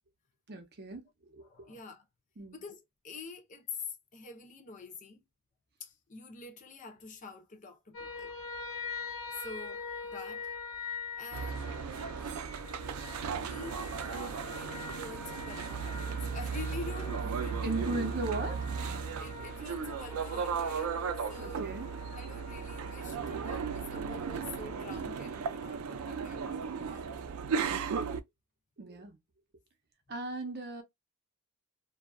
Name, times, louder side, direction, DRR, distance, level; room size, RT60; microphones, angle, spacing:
voice 1, 0.5-1.7 2.4-2.6 17.6-18.5 19.4-19.5 21.4-21.9 28.8-29.2 30.1-30.8, right 3 dB, 50° right, 0.7 m, -37 dB
voice 2, 1.4-2.0 2.5-3.8 4.1-5.2 5.8-8.3 9.4-10.5 11.2-11.8 12.5-12.8 13.4-18.2 19.2-20.9 21.3-21.6 22.1-27.1, left 4 dB, 35° left, 0.6 m, -46 dB
sound 1, 7.9-24.9, left 4 dB, 70° left, 1.4 m, -44 dB
sound 2, 11.3-28.2, right 6 dB, 80° right, 0.4 m, -36 dB
2.6 x 2.3 x 2.2 m
head